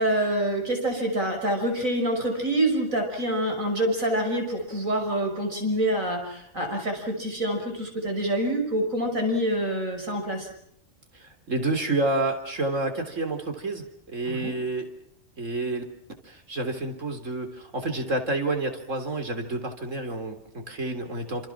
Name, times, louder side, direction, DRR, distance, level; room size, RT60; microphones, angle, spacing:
voice 1, 0.0-10.5 14.3-14.5, right 1 dB, 90° right, 4 dB, 6.5 m, -26 dB
voice 2, 11.1-14.9 15.4-15.8 16.2-21.5, right 2 dB, 70° right, 6 dB, 3.8 m, -29 dB
28.0 x 28.0 x 6.0 m, 0.68 s
omnidirectional pair, 1.4 m